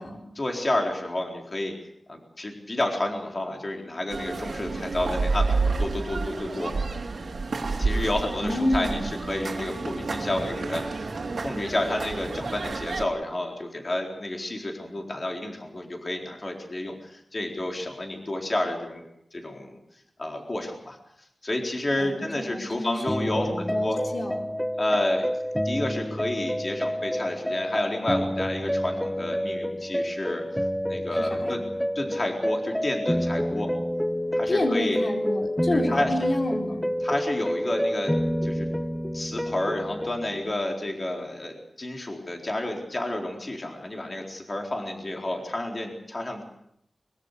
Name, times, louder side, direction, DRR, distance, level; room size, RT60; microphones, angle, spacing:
voice 1, 0.4-1.7 2.1-6.8 7.8-19.0 19.3-19.8 20.2-21.0 21.4-24.0 24.8-25.3 25.6-30.4 30.9-31.6 31.9-33.7 34.4-35.0 35.7-36.1 37.0-38.1 38.4-38.7 39.1-46.4, left 1 dB, 40° left, 1 dB, 4.1 m, -30 dB
sound 1, 4.1-13.0, right 3 dB, 80° right, 3.0 m, -29 dB
voice 2, 8.4-9.1 22.0-24.4 31.1-31.6 34.5-36.9, left 1 dB, 60° left, 1 dB, 4.1 m, -29 dB
sound 2, 23.1-40.5, equal, 5° left, 0.9 m, -28 dB
24.0 x 23.0 x 6.8 m, 0.74 s
wide cardioid pair, 100°, 0 cm